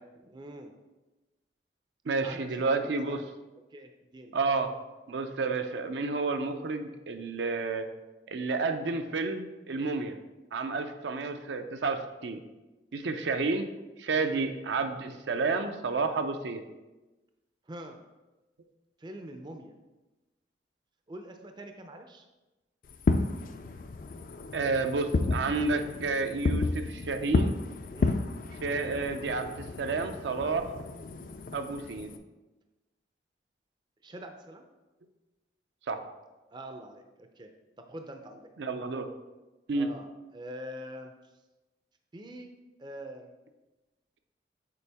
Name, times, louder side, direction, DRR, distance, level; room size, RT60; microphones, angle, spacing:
voice 1, 0.2-0.7 2.2-3.2 3.7-4.3 14.2-14.5 17.7-18.0 19.0-19.7 21.1-22.3 27.9-28.2 34.0-34.6 36.5-37.5 37.8-38.4 39.7-40.1 40.3-41.1 42.1-42.5 42.8-43.3, right 1 dB, 25° right, 5 dB, 0.4 m, -44 dB
voice 2, 2.1-3.2 4.3-4.7 5.1-7.8 8.3-10.1 10.5-12.4 12.9-13.7 14.0-16.6 24.5-27.6 28.6-29.5 29.8-30.7 31.5-32.1 35.9-36.0 38.6-39.1 39.7-39.9, right 3 dB, 80° right, 7 dB, 0.5 m, -30 dB
Fireworks, 22.9-32.2, left 3 dB, 45° left, 0.3 m, -32 dB
6.9 x 4.5 x 3.4 m, 1.1 s
head